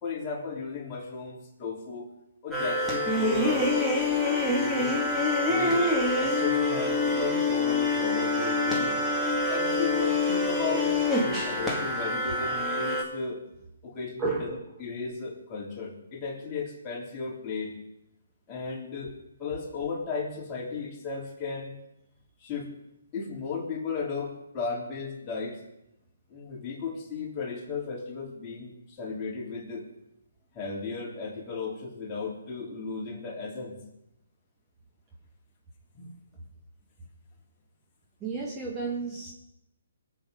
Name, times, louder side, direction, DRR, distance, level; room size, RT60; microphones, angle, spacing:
voice 1, 0.0-2.1 2.4-3.9 4.4-4.9 5.5-9.0 9.5-13.4 13.8-17.8 18.5-21.8 22.4-22.8 23.1-25.6 26.3-29.9 30.5-33.8 35.9-36.1, left 5 dB, 25° left, -3 dB, 3.5 m, -35 dB
sound 1, 2.5-13.0, left 2 dB, ahead, 2.0 m, -26 dB
voice 2, 14.2-14.6 38.2-39.3, right 4 dB, 15° right, -2 dB, 1.8 m, -32 dB
21.5 x 8.1 x 5.2 m, 0.87 s
hypercardioid pair, 145°, 0 cm